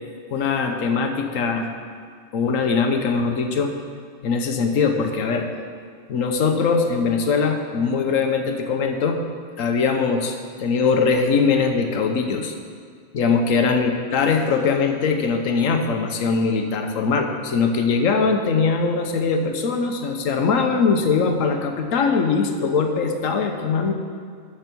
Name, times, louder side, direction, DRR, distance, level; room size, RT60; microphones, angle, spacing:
voice 1, 0.3-1.7 2.3-3.7 4.2-5.5 6.1-9.2 9.6-12.5 13.1-23.9, left 5 dB, 85° left, 5 dB, 1.3 m, -21 dB
13.5 x 4.7 x 6.0 m, 2.1 s
omnidirectional pair, 1.3 m